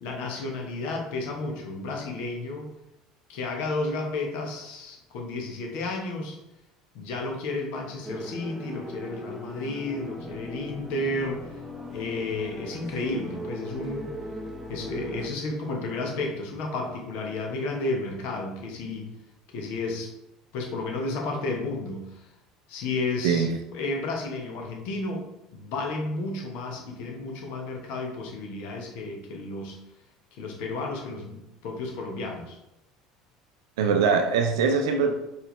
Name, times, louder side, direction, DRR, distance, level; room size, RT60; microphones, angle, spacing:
voice 1, 0.0-2.7 3.3-6.4 6.9-11.6 11.9-14.1 14.7-19.1 19.5-20.1 20.5-22.3 22.7-23.5 23.7-25.2 25.5-29.8 30.4-31.4 31.6-32.6, left 2 dB, 55° left, 1 dB, 1.0 m, -32 dB
sound 1, 8.0-15.3, equal, 5° right, 0.7 m, -39 dB
voice 2, 33.8-35.2, right 5 dB, 65° right, 5 dB, 0.5 m, -22 dB
4.6 x 3.3 x 3.2 m, 0.89 s
figure-of-eight pair, 65°, 3 cm